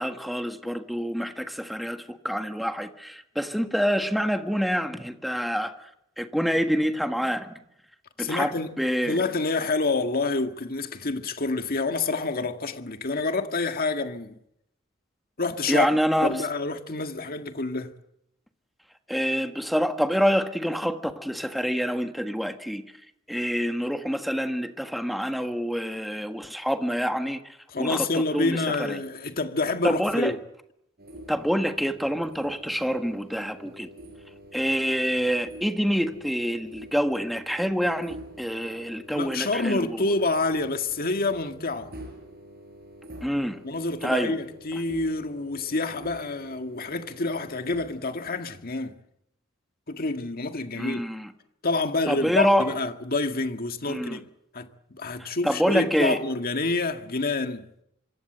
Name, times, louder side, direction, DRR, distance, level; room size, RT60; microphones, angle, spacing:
voice 1, 0.0-5.7 6.2-7.5 8.2-9.2 15.7-16.4 19.1-22.8 23.3-28.1 28.3-29.0 29.8-30.3 31.3-33.9 34.5-40.0 43.2-43.6 44.0-44.4 50.8-51.3 52.1-52.7 53.9-54.2 55.2-56.2, equal, ahead, 1.6 m, -26 dB
voice 2, 8.2-8.8 9.1-14.3 15.4-15.9 16.2-17.9 27.7-30.4 39.1-41.9 43.6-49.0 49.9-51.0 51.6-54.3 54.5-57.7, left 3 dB, 50° left, 1.9 m, -28 dB
sound 1, 31.0-48.0, right 1 dB, 50° right, 6.8 m, -46 dB
26.0 x 24.0 x 7.9 m
head